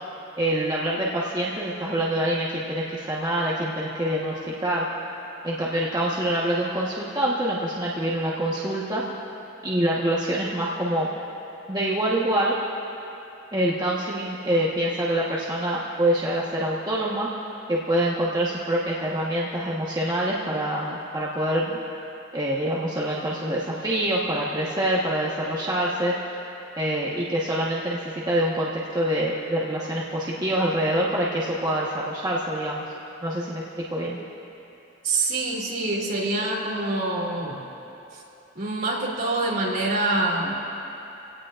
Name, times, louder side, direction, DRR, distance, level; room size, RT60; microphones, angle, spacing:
voice 1, 0.4-4.8 5.4-9.0 9.6-11.1 11.7-12.5 13.5-17.3 17.7-21.8 22.3-26.1 26.8-32.8 33.2-34.2, right 1 dB, 20° right, -6 dB, 1.3 m, -25 dB
voice 2, 35.0-37.6 38.5-40.6, right 2 dB, 50° right, -4 dB, 3.3 m, -25 dB
26.5 x 17.5 x 2.5 m, 2.9 s
head